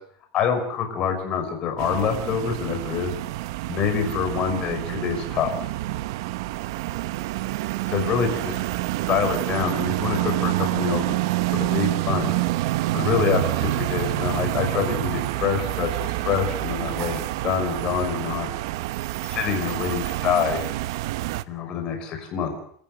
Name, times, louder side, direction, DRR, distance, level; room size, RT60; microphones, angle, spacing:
voice 1, 0.3-3.1 3.7-5.5 7.9-8.5 9.1-11.1 11.5-12.3 12.9-18.5 19.2-20.7 21.5-22.6, left 7 dB, 40° left, 5 dB, 6.0 m, -26 dB
sound 1, 1.8-21.4, right 17 dB, 75° right, 1.0 m, -27 dB
27.5 x 14.5 x 8.1 m, 0.63 s
supercardioid pair, 150°, 2 cm